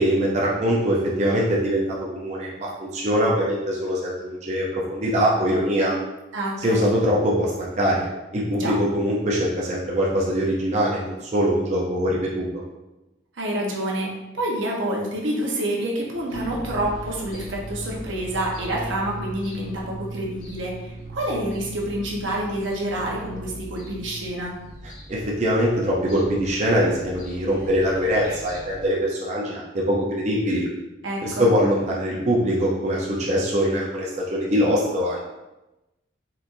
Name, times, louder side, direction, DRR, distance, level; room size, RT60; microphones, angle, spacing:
voice 1, 0.0-1.8 2.1-5.9 6.6-12.5 25.1-30.7 31.2-35.3, equal, 35° right, -4 dB, 0.6 m, -23 dB
voice 2, 6.3-6.9 8.5-8.7 13.4-14.1 14.3-24.6 31.0-31.5, right 1 dB, 80° right, -2 dB, 1.0 m, -28 dB
sound 1, 16.3-28.9, right 1 dB, 90° left, 1.0 m, -38 dB
4.3 x 3.9 x 2.6 m, 1.0 s
head